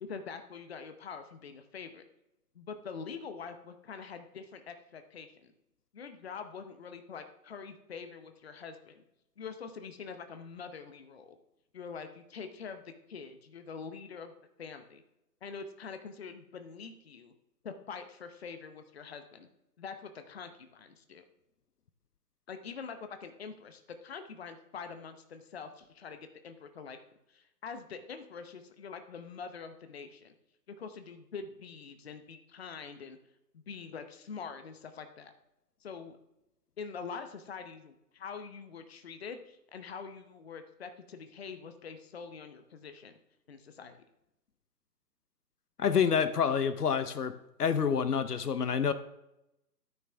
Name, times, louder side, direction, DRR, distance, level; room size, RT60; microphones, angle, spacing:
voice 1, 0.0-2.0 2.5-5.5 5.9-9.0 9.4-11.4 11.7-14.3 14.6-15.0 15.4-17.3 17.6-19.5 19.8-21.2 22.5-27.0 27.3-30.3 30.7-33.2 33.5-35.3 35.8-36.2 36.8-43.2 43.5-44.0, left 5 dB, 40° left, 8 dB, 0.8 m, -45 dB
voice 2, 45.8-47.3 47.6-48.9, left 7 dB, 70° left, 12 dB, 0.8 m, -27 dB
13.5 x 6.1 x 3.4 m, 0.87 s
figure-of-eight pair, 150°, 49 cm